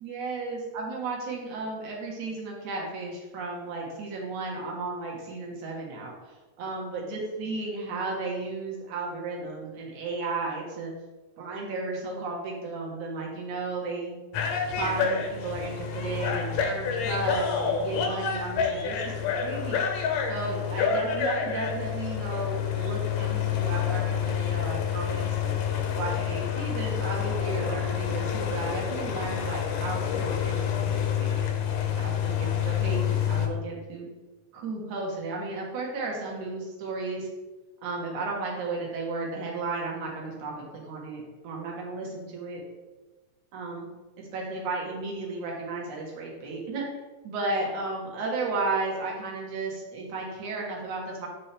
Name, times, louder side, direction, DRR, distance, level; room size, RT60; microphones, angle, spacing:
voice 1, 0.0-10.9 11.4-14.2 14.8-19.1 19.4-19.8 20.3-25.4 25.9-31.5 32.0-34.1 34.5-37.3 37.8-42.6 43.5-43.9 44.2-46.9 47.2-51.3, right 3 dB, 85° right, -2 dB, 2.8 m, -34 dB
sound 1, 14.3-33.5, left 7 dB, 75° left, 2.0 m, -28 dB
9.3 x 4.4 x 3.4 m, 1.2 s
omnidirectional pair, 3.3 m